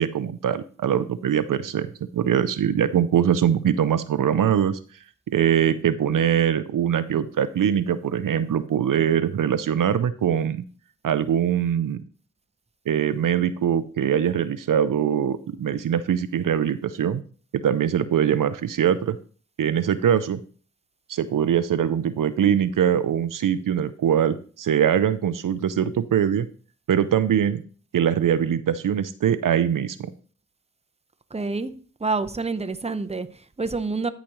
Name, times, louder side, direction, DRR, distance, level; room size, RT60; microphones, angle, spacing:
voice 1, 0.0-1.9 2.1-4.8 5.3-10.6 11.0-12.0 12.9-17.2 17.5-19.2 19.6-20.4 21.1-26.5 26.9-27.6 27.9-30.1, right 9 dB, 75° right, 0.5 m, -22 dB
voice 2, 31.3-31.7 32.0-34.1, right 3 dB, 20° right, 0.7 m, -27 dB
13.5 x 5.0 x 3.0 m
cardioid pair, 40°, 32 cm